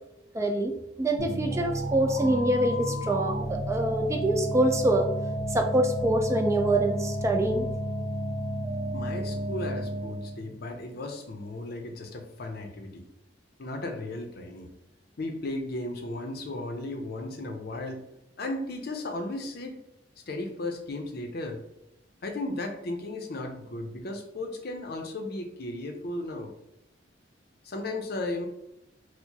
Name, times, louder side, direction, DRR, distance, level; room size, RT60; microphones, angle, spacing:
voice 1, 0.3-0.7 1.0-5.1 5.5-7.7, right 1 dB, 15° right, 3 dB, 0.3 m, -25 dB
sound 1, 1.2-10.4, right 1 dB, 65° right, 0.8 m, -32 dB
voice 2, 8.9-13.0 13.6-14.7 15.2-18.0 18.4-19.8 20.3-21.6 22.2-26.5 27.6-28.5, left 2 dB, 55° left, 4 dB, 0.6 m, -35 dB
4.5 x 2.1 x 2.8 m, 0.85 s
head